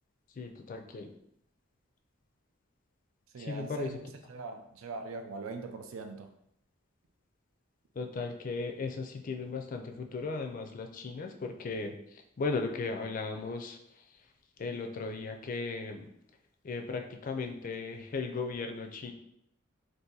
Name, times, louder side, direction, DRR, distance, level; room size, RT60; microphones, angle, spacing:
voice 1, 0.4-1.1 3.4-3.9 8.0-14.0 14.6-16.1 16.6-19.1, left 4 dB, 40° left, 4 dB, 0.4 m, -36 dB
voice 2, 3.3-4.0 4.3-6.3, right 3 dB, 85° right, 5 dB, 0.4 m, -41 dB
2.7 x 2.5 x 3.8 m, 0.76 s
head